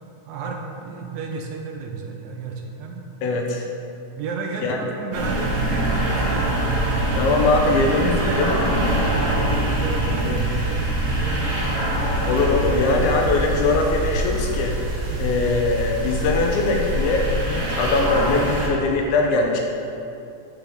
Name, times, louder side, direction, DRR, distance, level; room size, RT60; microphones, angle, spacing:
voice 1, 0.3-3.1 4.2-6.6 7.7-11.7 15.1-15.4, right 4 dB, 80° right, 1 dB, 1.9 m, -32 dB
voice 2, 3.2-3.7 4.6-4.8 7.2-8.2 8.5-8.6 10.2-10.5 12.3-14.8 15.2-19.6, left 3 dB, 80° left, 1 dB, 2.0 m, -21 dB
sound 1, 5.1-18.7, right 1 dB, 60° right, 1.2 m, -24 dB
6.3 x 5.5 x 3.4 m, 2.7 s
omnidirectional pair, 3.5 m